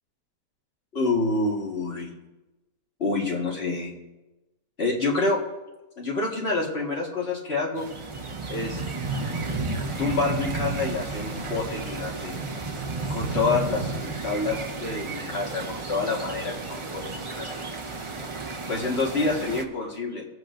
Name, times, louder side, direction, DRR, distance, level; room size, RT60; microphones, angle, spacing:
voice 1, 0.9-2.1 3.0-3.9 4.8-5.4 6.0-7.9 8.5-8.8 10.0-12.4 13.1-17.6 18.7-20.3, left 3 dB, 40° left, -2 dB, 1.8 m, -27 dB
sound 1, 7.8-19.6, right 3 dB, 50° right, 0.3 m, -32 dB
17.5 x 8.0 x 2.6 m, 1.1 s
omnidirectional pair, 1.7 m